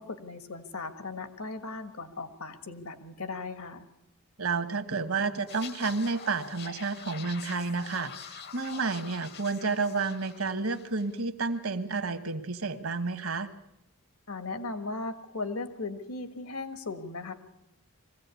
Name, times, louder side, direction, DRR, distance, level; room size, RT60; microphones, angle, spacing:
voice 1, 0.0-3.8 14.3-17.3, left 3 dB, 75° left, 9 dB, 1.6 m, -37 dB
voice 2, 4.4-13.5, right 4 dB, 70° right, 9 dB, 1.4 m, -31 dB
sound 1, 5.5-11.2 11.5-11.7, left 7 dB, 50° left, 0.9 m, -45 dB
22.0 x 16.0 x 8.3 m, 0.84 s
head